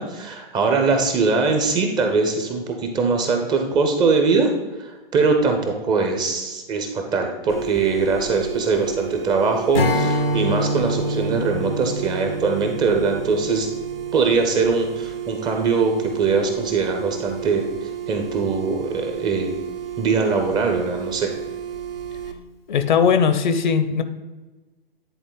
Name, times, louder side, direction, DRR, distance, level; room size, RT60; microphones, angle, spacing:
voice 1, 0.0-4.5 4.8-13.7 14.1-17.6 18.1-19.5 20.0-21.3, right 4 dB, 15° right, 4 dB, 0.6 m, -22 dB
sound 1, 7.5-22.3, right 10 dB, 70° right, 1.0 m, -32 dB
Strum, 9.7-15.2, left 1 dB, 80° left, 0.9 m, -27 dB
voice 2, 22.7-24.0, left 6 dB, 50° left, 10 dB, 0.7 m, -19 dB
10.0 x 3.9 x 3.9 m, 1.2 s
figure-of-eight pair, 120°, 29 cm